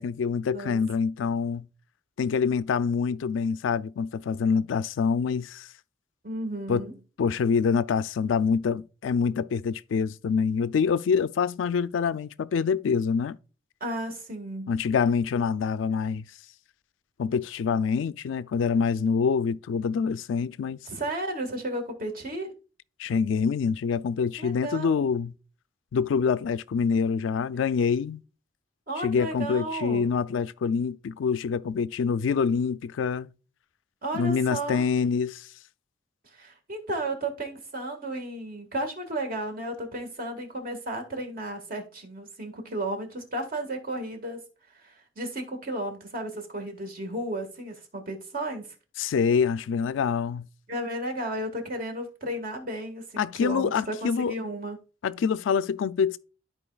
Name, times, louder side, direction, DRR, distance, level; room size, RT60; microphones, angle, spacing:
voice 1, 0.0-1.6 2.2-5.7 6.7-6.9 7.2-13.4 14.7-16.2 17.2-20.8 23.0-25.3 25.9-28.2 29.0-33.3 34.1-35.5 49.0-50.5 53.2-54.3 55.0-56.2, left 6 dB, 85° left, 0.4 m, -26 dB
voice 2, 6.2-6.9 13.8-14.8 20.9-22.5 24.4-25.0 28.9-30.1 34.0-34.8 36.3-44.4 44.7-48.7 50.7-54.8, right 1 dB, 50° right, 1.7 m, -33 dB
13.0 x 4.4 x 2.3 m
head